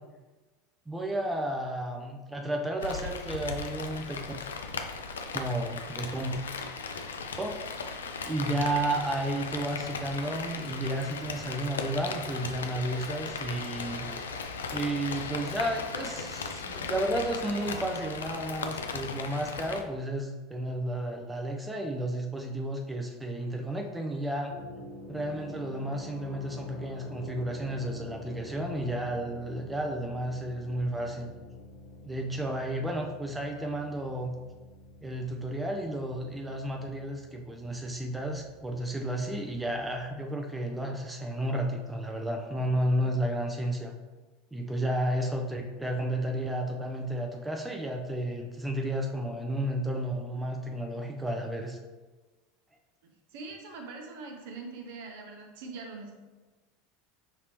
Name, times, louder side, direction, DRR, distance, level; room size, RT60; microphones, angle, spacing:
voice 1, 0.9-4.2 5.3-6.4 7.4-7.5 8.2-14.1 14.7-24.5 25.1-31.3 32.1-34.3 35.0-43.9 44.5-51.8, right 1 dB, 10° right, 1 dB, 0.5 m, -32 dB
Rain, 2.8-19.8, left 4 dB, 75° left, 0.3 m, -37 dB
sound 1, 24.5-40.1, left 2 dB, 60° left, 1.3 m, -47 dB
voice 2, 53.0-56.1, right 3 dB, 60° right, 2 dB, 0.8 m, -43 dB
5.8 x 2.9 x 3.0 m, 1.2 s
figure-of-eight pair, 75°, 0 cm